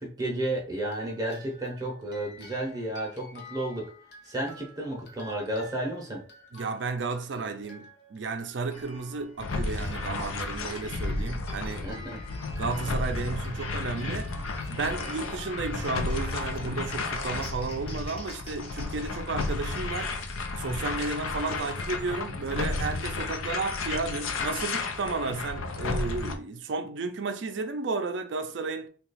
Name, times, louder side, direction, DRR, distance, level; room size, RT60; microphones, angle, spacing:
voice 1, 0.0-3.9 4.2-6.2 11.7-12.2, right 1 dB, 20° right, 0.6 m, -32 dB
sound 1, 0.8-18.3, equal, 55° left, 0.8 m, -51 dB
voice 2, 6.5-12.0 12.6-14.3 14.7-28.9, right 4 dB, 60° right, 0.4 m, -33 dB
sound 2, 8.7-20.4, left 1 dB, 30° left, 0.6 m, -47 dB
sound 3, 9.4-26.4, left 3 dB, 90° left, 0.5 m, -33 dB
2.8 x 2.3 x 4.0 m
head